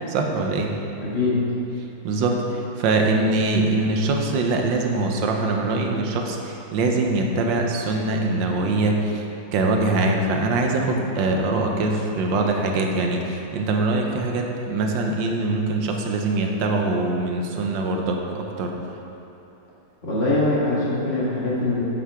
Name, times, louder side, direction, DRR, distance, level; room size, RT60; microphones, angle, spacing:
voice 1, 0.1-0.7 2.0-9.2 9.5-18.7, right 2 dB, 80° right, 2 dB, 1.5 m, -23 dB
voice 2, 1.0-1.4 20.0-21.8, left 2 dB, 35° left, -7 dB, 1.8 m, -22 dB
8.4 x 7.5 x 3.5 m, 2.9 s
omnidirectional pair, 2.0 m